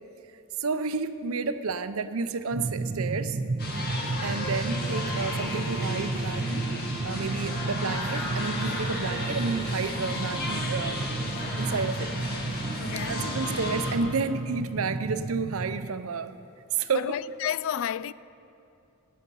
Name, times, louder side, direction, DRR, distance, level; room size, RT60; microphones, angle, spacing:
voice 1, 0.6-3.4 4.2-6.7 7.0-11.0 11.6-12.1 13.1-16.3 16.7-17.2, right 4 dB, 85° right, 0.7 m, -31 dB
sound 1, 2.5-15.9, right 3 dB, 40° right, 0.5 m, -32 dB
sound 2, 3.6-14.0, left 1 dB, 50° left, 2.0 m, -34 dB
voice 2, 12.8-13.2 16.9-18.1, left 9 dB, 65° left, 0.3 m, -31 dB
15.5 x 9.5 x 6.9 m
head